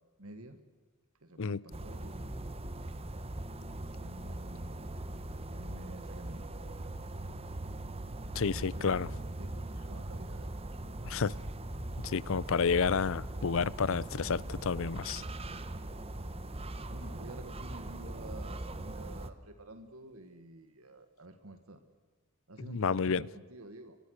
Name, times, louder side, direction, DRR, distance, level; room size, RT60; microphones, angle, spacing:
voice 1, 0.2-0.6 1.2-2.5 3.8-4.9 5.5-7.5 8.3-10.5 16.8-21.8 22.5-24.0, right 1 dB, 75° right, 9 dB, 1.7 m, -50 dB
sound 1, 1.7-19.3, right 1 dB, 30° right, 1.2 m, -41 dB
voice 2, 8.3-9.1 11.0-11.3 12.0-15.2 22.7-23.3, left 5 dB, 65° left, 23 dB, 0.6 m, -30 dB
sound 2, 15.6-17.1 17.5-18.9 19.7-20.5, right 1 dB, 50° right, 4.3 m, -63 dB
23.5 x 22.0 x 6.5 m, 1.4 s
head